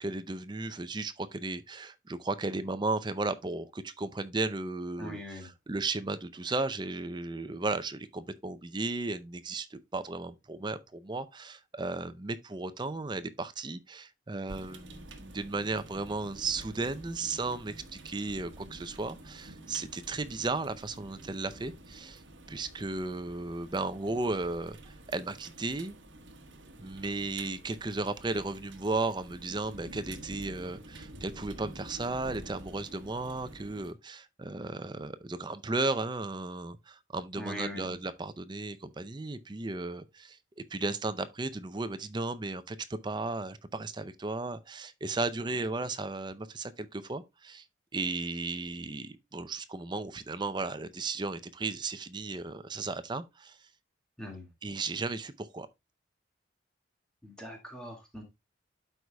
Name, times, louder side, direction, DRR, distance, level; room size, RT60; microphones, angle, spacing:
voice 1, 0.0-22.2 22.5-26.0 26.8-40.4 40.7-47.7 47.9-53.6 54.6-55.7, right 3 dB, 25° right, 0.5 m, -35 dB
voice 2, 5.0-5.5 37.4-37.9 54.2-54.5 57.2-58.2, left 1 dB, 5° left, 1.9 m, -41 dB
sound 1, 14.5-33.9, right 1 dB, 70° right, 1.2 m, -49 dB
12.0 x 4.7 x 2.2 m
head